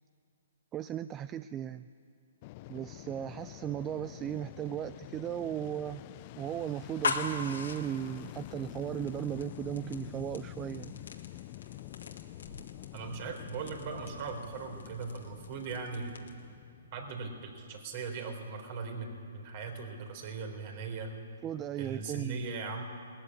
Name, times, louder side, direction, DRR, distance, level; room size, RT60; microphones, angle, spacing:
voice 1, 0.7-1.9 2.7-6.0 6.4-11.1 13.3-13.4 21.4-22.5, right 10 dB, 20° right, 14 dB, 0.4 m, -36 dB
Fixed-wing aircraft airplane, 2.4-17.6, left 17 dB, 40° left, 0.4 m, -47 dB
sound 1, 7.0-16.5, left 4 dB, 80° left, 2.2 m, -42 dB
voice 2, 12.9-16.2 16.9-21.1 21.7-22.8, right 4 dB, 45° right, 4 dB, 3.7 m, -39 dB
19.0 x 14.5 x 9.8 m, 2.5 s
hypercardioid pair, 140°, 0 cm